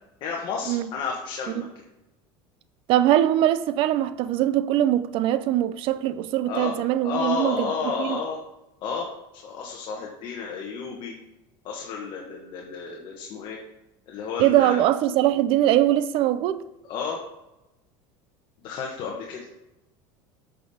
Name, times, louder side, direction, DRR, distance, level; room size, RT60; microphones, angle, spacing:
voice 1, 0.2-1.7 6.4-6.7 7.0-8.4 8.8-9.1 9.4-11.1 11.6-13.6 14.1-14.8 16.8-17.2 18.6-19.5, left 5 dB, 50° left, 1.4 m, -31 dB
voice 2, 2.9-8.2 14.4-16.6, right 13 dB, 50° right, 0.5 m, -22 dB
8.5 x 5.5 x 4.3 m
cardioid pair, 140°, 11 cm